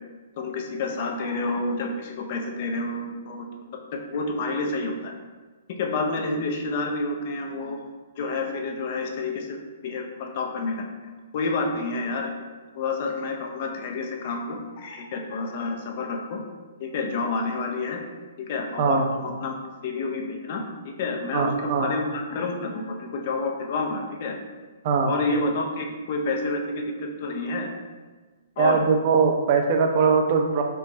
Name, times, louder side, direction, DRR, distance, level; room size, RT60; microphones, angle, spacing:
voice 1, 0.4-3.5 4.1-5.1 5.8-7.8 8.2-10.8 11.3-12.3 12.7-16.4 16.8-18.0 18.5-19.5 19.8-24.4 25.0-27.7 28.6-28.8, left 3 dB, 50° left, 2 dB, 0.6 m, -29 dB
voice 2, 21.3-21.9 24.8-25.1 28.6-30.6, right 5 dB, 45° right, 4 dB, 0.5 m, -21 dB
4.5 x 2.2 x 3.9 m, 1.3 s
hypercardioid pair, 135°, 0 cm